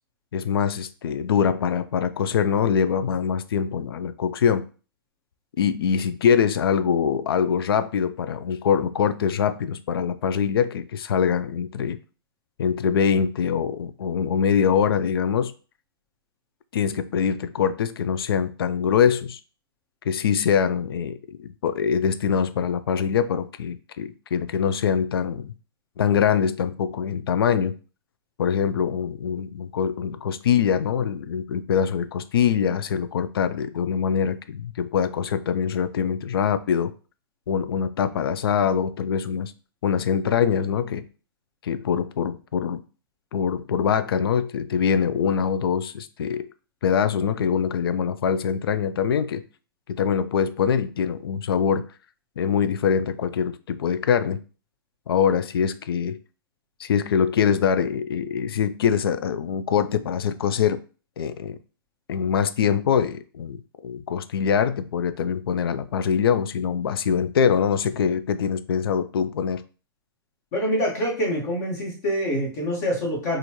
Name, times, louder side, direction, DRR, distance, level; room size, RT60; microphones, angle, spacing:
voice 1, 0.3-4.6 5.6-12.0 12.6-15.5 16.7-19.4 20.1-25.5 26.0-27.7 28.4-36.9 37.5-39.5 39.8-41.0 41.6-42.8 43.3-46.5 46.8-49.4 49.9-51.8 52.4-54.4 55.1-56.2 56.8-60.8 61.2-61.6 62.1-69.6, left 7 dB, 70° left, 0.4 m, -23 dB
voice 2, 70.5-73.4, equal, 40° left, 1.6 m, -25 dB
4.1 x 2.5 x 3.0 m
hypercardioid pair, 155°, 13 cm